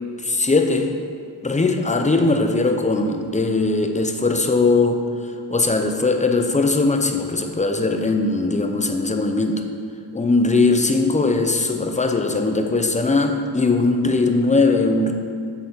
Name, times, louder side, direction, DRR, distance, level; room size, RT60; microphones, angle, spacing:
voice 1, 0.2-1.0 1.4-5.0 5.5-9.6 10.1-15.1, left 3 dB, 15° left, 5 dB, 0.7 m, -20 dB
8.2 x 6.7 x 4.0 m, 2.2 s
cardioid pair, 65°, 42 cm